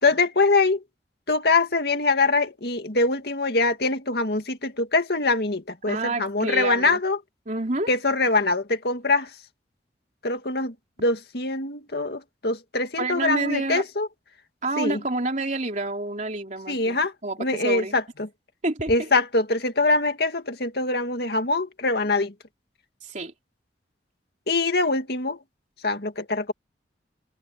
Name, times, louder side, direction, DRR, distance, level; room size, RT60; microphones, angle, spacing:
voice 1, 0.0-0.8 1.3-7.2 7.9-9.3 10.2-14.1 14.8-15.0 16.7-17.1 17.4-18.3 18.9-22.3 24.5-25.4 25.8-26.5, left 3 dB, 65° left, 2.2 m, -23 dB
voice 2, 5.9-7.0 7.5-7.9 13.0-13.8 14.6-17.9 18.6-19.1 23.0-23.3, right 2 dB, 45° right, 3.4 m, -28 dB
head